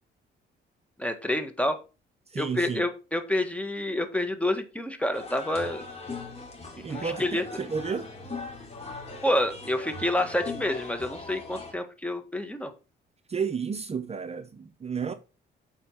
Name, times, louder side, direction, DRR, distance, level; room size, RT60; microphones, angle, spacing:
voice 1, 1.0-1.8 2.4-5.9 6.9-7.4 9.2-12.7, left 1 dB, 5° left, 1.6 m, -28 dB
voice 2, 2.3-2.8 6.8-8.1 13.3-15.1, right 6 dB, 30° right, 0.7 m, -32 dB
sound 1, 5.1-11.7, left 3 dB, 30° left, 2.6 m, -40 dB
8.2 x 4.5 x 5.6 m
cardioid pair, 90°, 20 cm